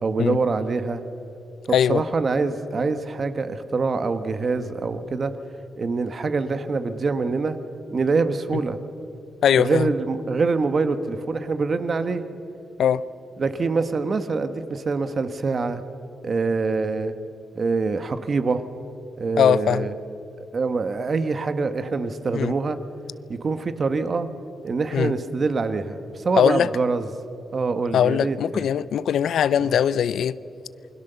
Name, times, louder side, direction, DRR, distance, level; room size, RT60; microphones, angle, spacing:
voice 1, 0.0-1.0 1.7-5.3 5.8-7.6 7.9-8.8 9.5-12.2 13.4-15.8 16.2-17.1 17.5-18.6 19.2-19.9 20.5-22.8 23.3-24.3 24.6-27.1 27.5-28.7, right 4 dB, 40° right, 10 dB, 1.3 m, -25 dB
voice 2, 1.7-2.0 9.4-9.9 12.8-13.0 19.4-19.9 22.3-22.5 24.9-25.1 26.4-26.7 27.9-30.3, left 9 dB, 80° left, 18 dB, 0.5 m, -20 dB
28.0 x 21.5 x 6.9 m, 2.8 s
cardioid pair, 125°, 0 cm